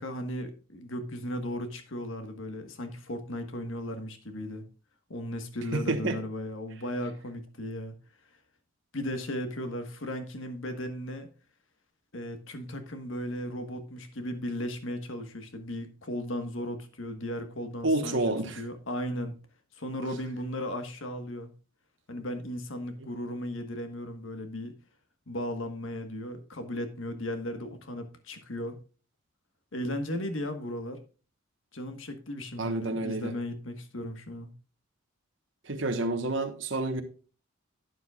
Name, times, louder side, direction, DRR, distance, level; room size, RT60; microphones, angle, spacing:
voice 1, 0.0-4.6 5.1-7.9 8.9-11.3 12.1-19.4 19.8-21.5 22.1-24.7 25.3-28.8 29.7-31.0 31.7-34.5, left 1 dB, 70° left, 1.4 m, -36 dB
voice 2, 5.7-6.2 17.8-18.6 32.6-33.3 35.7-37.0, right 2 dB, 65° right, 1.2 m, -29 dB
12.0 x 9.4 x 2.4 m
head